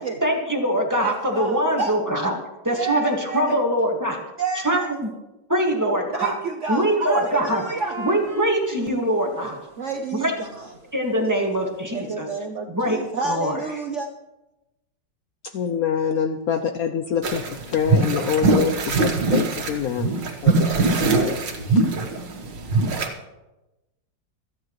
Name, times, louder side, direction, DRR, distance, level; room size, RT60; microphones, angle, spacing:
voice 1, 0.2-2.3 2.6-4.2 4.6-5.1 5.5-6.3 6.7-7.6 8.0-9.6 10.2-10.3 10.9-12.3 12.7-13.0 13.2-13.6, right 1 dB, 10° right, 0 dB, 1.8 m, -23 dB
voice 2, 1.0-2.0 2.7-3.6 4.4-4.9 6.1-8.0 9.4-10.7 11.9-14.1, right 4 dB, 55° right, 3 dB, 0.9 m, -30 dB
sound 1, 7.2-7.3 7.6-9.4 9.7-11.7 12.0-12.1, right 3 dB, 35° right, 1.4 m, -39 dB
voice 3, 15.5-17.4 17.7-20.1 20.4-21.4 21.7-21.8, left 8 dB, 65° left, 8 dB, 1.0 m, -25 dB
sound 2, 17.2-23.1, right 3 dB, 75° right, 2.1 m, -22 dB
26.5 x 9.5 x 3.2 m, 1.0 s
omnidirectional pair, 2.0 m